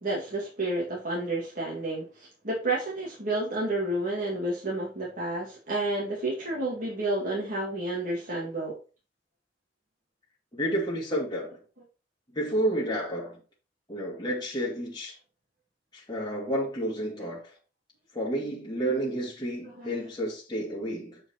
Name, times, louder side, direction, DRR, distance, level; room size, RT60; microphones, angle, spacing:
voice 1, 0.0-8.7 19.6-19.9, right 2 dB, 45° right, 2.2 m, -30 dB
voice 2, 10.5-11.6 12.3-13.4 13.9-15.2 15.9-17.5 18.1-21.2, right 1 dB, 20° left, 2.0 m, -30 dB
7.7 x 4.8 x 4.3 m
head